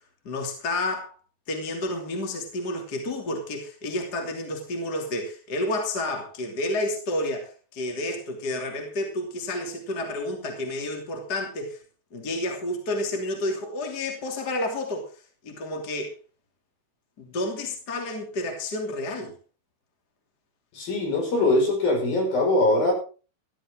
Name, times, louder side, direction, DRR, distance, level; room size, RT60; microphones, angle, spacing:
voice 1, 0.2-1.1 1.5-11.8 12.1-16.1 17.2-19.4, left 1 dB, 25° left, 3 dB, 3.1 m, -30 dB
voice 2, 20.7-22.9, left 2 dB, 65° left, 1 dB, 7.4 m, -22 dB
14.5 x 14.5 x 3.9 m, 0.36 s
omnidirectional pair, 4.5 m